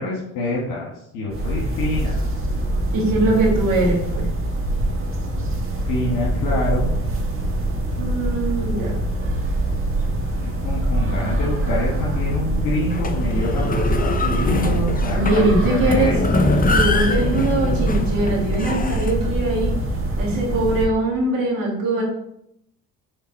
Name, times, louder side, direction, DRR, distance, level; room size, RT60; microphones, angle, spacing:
voice 1, 0.0-2.1 5.8-6.9 10.4-16.2, left 1 dB, 75° left, -4 dB, 1.5 m, -26 dB
sound 1, 1.3-20.9, right 1 dB, 35° right, 1.7 m, -24 dB
voice 2, 2.9-4.3 8.0-9.0 15.1-16.1 16.7-19.7 20.2-22.0, right 2 dB, 60° right, -3 dB, 2.1 m, -21 dB
sound 2, 12.9-19.1, left 3 dB, 20° left, 0.7 m, -24 dB
6.1 x 3.8 x 4.1 m, 0.75 s
hypercardioid pair, 60°, 38 cm